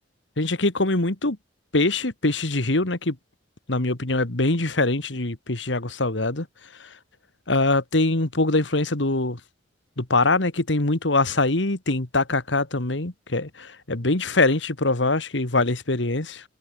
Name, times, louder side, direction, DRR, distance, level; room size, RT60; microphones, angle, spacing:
voice 1, 0.4-1.4 1.7-3.2 3.7-6.5 7.5-9.4 10.0-16.4, left 2 dB, 70° left, 2.1 m, -23 dB
head